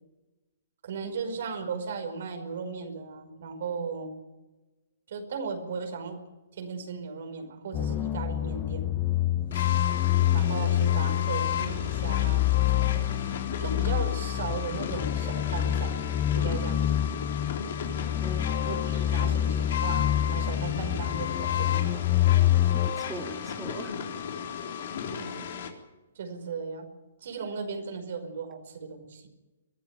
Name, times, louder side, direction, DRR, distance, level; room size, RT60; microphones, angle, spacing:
voice 1, 0.8-4.1 5.1-6.2 6.5-8.9 9.5-9.7 10.3-13.1 13.6-16.0 16.3-17.1 18.6-22.2 25.2-25.5 26.1-26.9 27.2-29.3, right 5 dB, 65° right, 6 dB, 5.2 m, -36 dB
sound 1, 7.7-22.9, left 12 dB, 25° left, 0.9 m, -27 dB
sound 2, 9.5-25.7, left 8 dB, 60° left, 3.8 m, -34 dB
voice 2, 18.2-19.1 22.7-23.9, right 1 dB, 5° right, 2 dB, 2.5 m, -42 dB
23.0 x 14.0 x 9.2 m, 1.1 s
hypercardioid pair, 140°, 0 cm